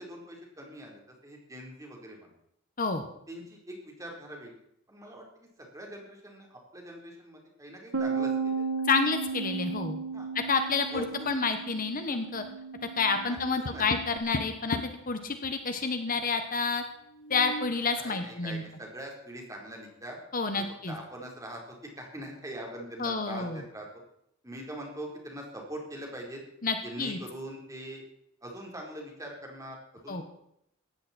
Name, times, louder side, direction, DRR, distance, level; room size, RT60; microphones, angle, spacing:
voice 1, 0.0-2.3 3.3-4.6 4.9-5.3 5.6-8.7 10.1-10.3 10.9-11.3 13.2-13.8 18.0-20.2 20.5-23.9 24.4-26.4 26.8-28.0 28.4-29.8 30.0-30.2, right 1 dB, 15° right, 0 dB, 4.3 m, -42 dB
Bass guitar, 7.9-14.2, right 5 dB, 75° right, 1.6 m, -35 dB
voice 2, 8.9-10.0 10.3-12.4 13.0-14.8 15.1-16.8 17.3-18.6 20.3-21.0 23.0-23.6 26.6-27.2 30.1-30.2, left 4 dB, 45° left, 7 dB, 1.4 m, -29 dB
Tap, 13.4-15.1 17.1-17.8, left 2 dB, 65° left, 0.8 m, -37 dB
18.5 x 14.5 x 4.5 m, 0.75 s
head